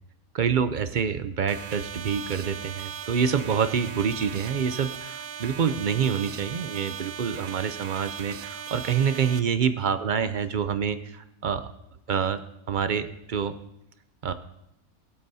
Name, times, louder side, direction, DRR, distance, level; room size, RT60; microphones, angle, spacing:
voice 1, 0.3-11.7 12.1-12.4 12.7-13.5 14.2-14.3, right 7 dB, 50° right, 11 dB, 0.6 m, -27 dB
sound 1, 1.5-9.4, right 8 dB, 85° right, 1.1 m, -38 dB
22.5 x 8.2 x 2.7 m, 0.83 s
omnidirectional pair, 1.4 m